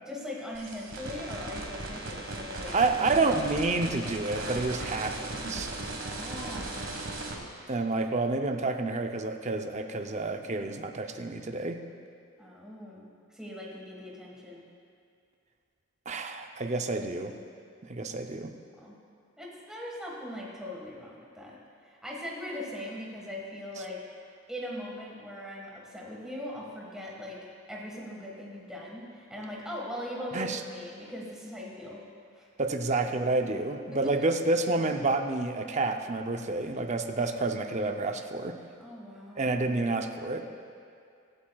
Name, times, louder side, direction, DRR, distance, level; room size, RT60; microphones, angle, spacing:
voice 1, 0.1-2.7 5.9-6.9 12.4-14.6 18.7-18.9 19.4-24.0 24.5-32.0 32.3-32.5 33.9-34.1 38.8-39.5, left 1 dB, 5° right, -4 dB, 1.6 m, -40 dB
sound 1, 0.5-7.3, right 2 dB, 60° right, 1.5 m, -37 dB
voice 2, 2.7-5.7 7.7-11.8 16.1-17.4 17.9-18.5 30.3-30.6 32.6-38.6 39.4-40.5, right 3 dB, 30° right, 5 dB, 0.6 m, -29 dB
24.0 x 8.6 x 2.3 m, 2.3 s
head